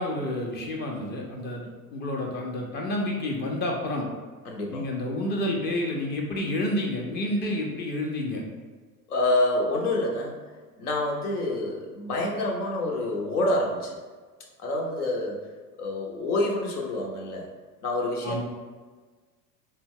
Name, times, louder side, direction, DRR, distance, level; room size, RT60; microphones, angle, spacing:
voice 1, 0.0-1.6 1.9-4.1 4.7-8.4 18.2-18.4, left 1 dB, 20° left, 1 dB, 0.6 m, -29 dB
voice 2, 4.4-4.8 9.1-10.4 10.8-14.0 14.6-15.4 15.8-17.5 17.8-18.4, left 1 dB, 70° left, 0 dB, 0.9 m, -27 dB
4.1 x 2.1 x 3.7 m, 1.4 s
figure-of-eight pair, 75°, 48 cm